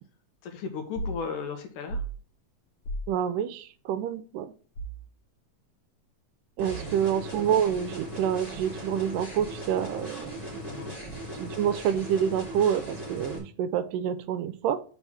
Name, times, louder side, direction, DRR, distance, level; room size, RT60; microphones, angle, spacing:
voice 1, 0.4-2.0 6.7-7.0 10.6-11.0, left 5 dB, 75° left, 2.6 m, -36 dB
sound 1, 1.0-1.2 1.9-2.2 2.8-3.1 4.8-5.1 6.7-7.2, right 2 dB, 60° left, 3.3 m, -34 dB
voice 2, 3.1-4.5 6.6-10.5 11.3-14.8, right 9 dB, 80° right, 2.1 m, -28 dB
sound 2, 6.6-13.4, right 1 dB, 15° left, 2.2 m, -38 dB
5.9 x 4.6 x 5.6 m
omnidirectional pair, 3.8 m